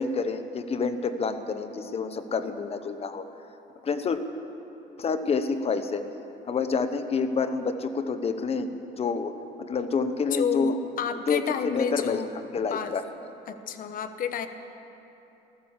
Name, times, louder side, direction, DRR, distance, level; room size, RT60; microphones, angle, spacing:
voice 1, 0.0-3.2 3.8-4.2 5.0-6.0 6.4-9.3 9.6-10.8 11.3-12.2 12.5-13.0, left 5 dB, 35° left, 10 dB, 1.0 m, -28 dB
voice 2, 10.3-12.3 12.7-13.0 13.5-14.5, left 7 dB, 55° left, 10 dB, 1.1 m, -30 dB
14.0 x 13.5 x 7.3 m, 3.0 s
cardioid pair, 110°, 17 cm